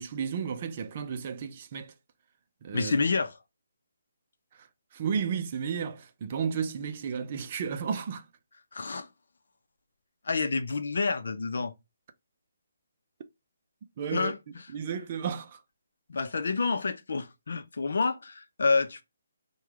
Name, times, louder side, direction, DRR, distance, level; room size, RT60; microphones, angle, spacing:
voice 1, 0.0-1.9 2.6-2.9 4.6-4.7 4.9-8.3 14.0-15.6, right 7 dB, 30° right, 0.5 m, -33 dB
voice 2, 2.7-3.4 8.7-9.1 10.2-11.7 14.1-14.4 16.1-19.0, left 4 dB, 70° left, 0.7 m, -28 dB
4.7 x 2.3 x 3.5 m
hypercardioid pair, 170°, 0 cm